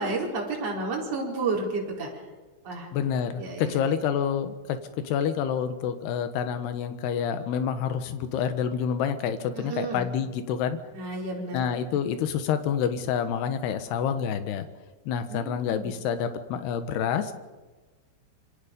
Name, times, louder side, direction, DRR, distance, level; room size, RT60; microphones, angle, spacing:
voice 1, 0.0-2.1 2.6-2.9 3.4-3.9 9.5-10.1 10.9-11.6 11.9-12.0 15.3-15.9, right 3 dB, 35° right, -3 dB, 5.4 m, -31 dB
voice 2, 2.9-4.8 5.0-10.8 11.5-14.7 15.1-17.3, left 8 dB, 70° left, 9 dB, 3.2 m, -28 dB
27.0 x 24.5 x 5.3 m, 1.3 s
omnidirectional pair, 5.2 m